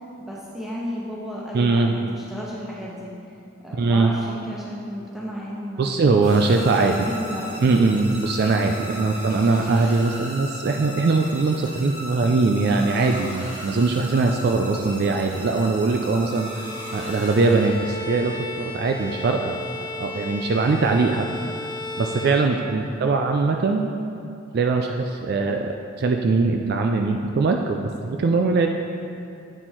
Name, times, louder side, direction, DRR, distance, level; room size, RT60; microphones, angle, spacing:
voice 1, 0.2-3.1 3.6-5.9 6.4-7.5 9.0-9.1 22.6-22.9, equal, ahead, -6 dB, 1.1 m, -34 dB
voice 2, 1.5-1.9 3.7-4.1 5.8-7.1 7.6-16.6 16.9-19.6 20.0-21.3 22.0-23.9 24.5-28.7, right 3 dB, 50° right, 3 dB, 0.3 m, -21 dB
sound 1, 6.2-18.1, equal, 35° right, 1.7 m, -37 dB
Bowed string instrument, 16.3-23.1, left 2 dB, 25° left, 0.4 m, -35 dB
8.8 x 4.3 x 4.4 m, 2.6 s
head